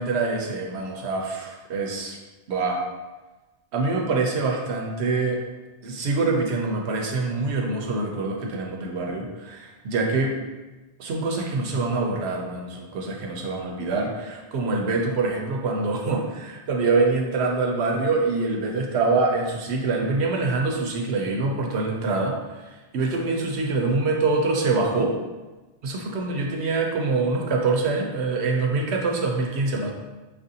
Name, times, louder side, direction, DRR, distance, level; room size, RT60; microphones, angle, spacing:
voice 1, 0.0-2.2 2.5-2.8 3.7-5.4 5.8-10.3 11.0-25.1 25.8-29.9, right 3 dB, 70° right, 1 dB, 0.9 m, -25 dB
5.7 x 2.5 x 2.7 m, 1.2 s
omnidirectional pair, 1.2 m